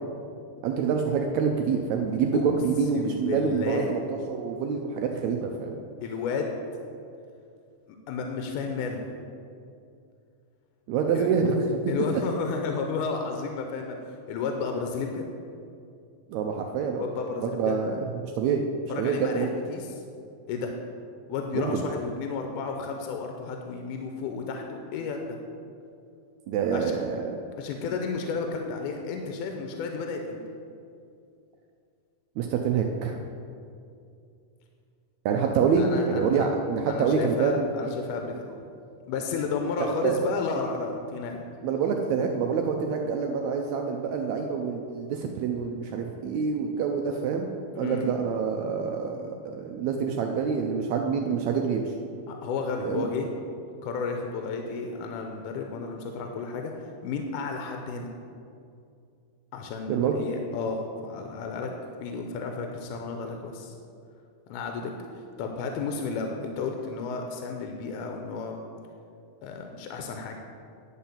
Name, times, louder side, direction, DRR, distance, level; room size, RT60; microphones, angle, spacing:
voice 1, 0.6-5.8 10.9-12.1 16.3-17.0 17.4-18.6 19.0-19.5 21.5-21.8 26.5-27.3 32.4-33.2 35.3-37.9 40.0-40.1 41.6-47.5 47.8-51.9 52.8-53.1 59.9-60.2, right 6 dB, 80° right, 3 dB, 1.7 m, -26 dB
voice 2, 2.9-4.0 6.0-6.5 8.1-9.1 11.2-11.3 11.9-15.3 17.0-17.8 18.9-20.0 20.5-20.7 21.3-25.4 26.7-26.9 27.6-30.4 35.8-36.5 36.9-38.3 39.1-41.4 47.7-48.1 52.3-53.3 53.8-56.7 57.0-58.1 59.5-61.7 62.0-63.7 64.5-64.9 65.4-68.6 69.4-70.4, left 5 dB, 85° left, 3 dB, 2.2 m, -32 dB
10.5 x 4.4 x 7.1 m, 2.4 s
omnidirectional pair, 3.7 m